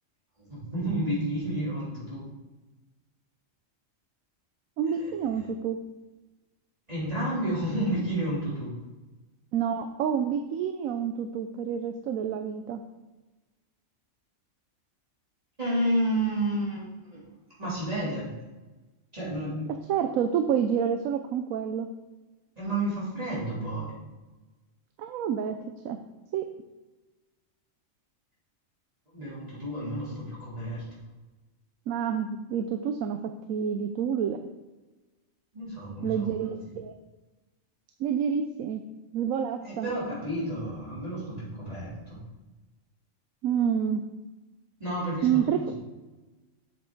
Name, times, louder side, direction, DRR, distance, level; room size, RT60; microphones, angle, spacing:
voice 1, 0.5-2.3 5.0-5.4 6.9-8.7 15.6-16.8 17.1-17.2 17.6-18.3 19.1-19.7 22.6-23.9 29.1-30.8 35.5-36.2 39.6-42.2 44.8-45.4, right 1 dB, 30° right, -9 dB, 3.1 m, -30 dB
voice 2, 4.8-5.8 9.5-12.8 19.9-21.9 25.0-25.6 25.8-26.0 26.3-26.4 31.9-34.4 36.0-36.9 38.0-38.8 39.1-39.9 43.4-44.0 45.2-45.6, right 8 dB, 85° right, 7 dB, 1.0 m, -28 dB
8.1 x 7.6 x 3.8 m, 1.1 s
omnidirectional pair, 1.4 m